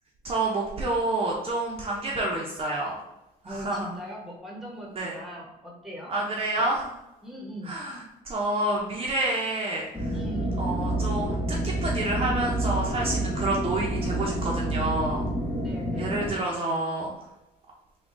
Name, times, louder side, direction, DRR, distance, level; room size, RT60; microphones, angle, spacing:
voice 1, 0.2-2.9 3.4-3.9 4.9-5.2 6.1-6.9 7.6-10.1 10.6-15.2 16.0-17.1, right 2 dB, 35° right, -3 dB, 0.7 m, -28 dB
voice 2, 3.4-6.1 6.5-6.8 7.2-7.8 10.1-10.6 15.6-16.4, equal, ahead, -2 dB, 1.1 m, -40 dB
sound 1, 9.9-16.3, right 1 dB, 20° left, 0.9 m, -28 dB
3.7 x 2.3 x 3.7 m, 0.91 s
cardioid pair, 110°, 17 cm